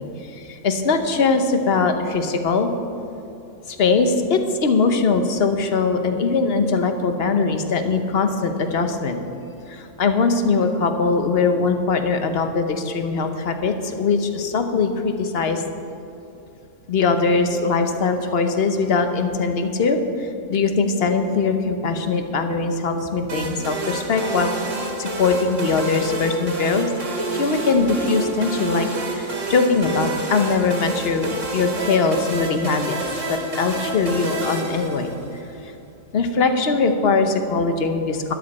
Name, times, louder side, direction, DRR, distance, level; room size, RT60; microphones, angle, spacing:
voice 1, 0.0-2.7 3.7-9.2 9.7-15.6 16.9-24.7 25.0-26.9 27.3-33.0 33.3-35.7 36.1-38.3, left 4 dB, 55° left, 7 dB, 1.0 m, -21 dB
sound 1, 23.3-35.5, right 2 dB, 75° right, 1.9 m, -29 dB
12.5 x 10.5 x 4.2 m, 2.8 s
omnidirectional pair, 1.3 m